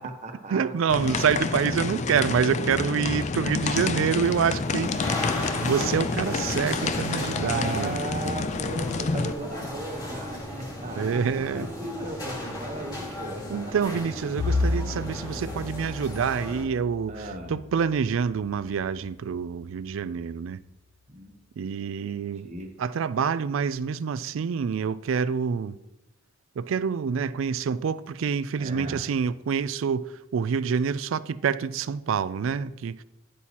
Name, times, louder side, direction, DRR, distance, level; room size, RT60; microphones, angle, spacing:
voice 1, 0.0-0.7 7.4-11.3 11.5-13.7 17.1-17.6 21.1-21.4 22.4-22.7 28.6-29.0, right 1 dB, 35° right, 1.1 m, -36 dB
voice 2, 0.5-5.2 5.6-8.0 11.0-11.7 13.5-20.6 21.6-22.5 22.8-25.8 26.6-33.0, right 6 dB, 80° right, 0.4 m, -27 dB
sound 1, 0.9-9.3, left 4 dB, 35° left, 0.4 m, -29 dB
sound 2, 4.2-16.6, left 1 dB, 20° left, 2.1 m, -36 dB
Bowed string instrument, 14.4-19.0, left 3 dB, 70° left, 0.7 m, -32 dB
10.0 x 8.2 x 2.9 m
head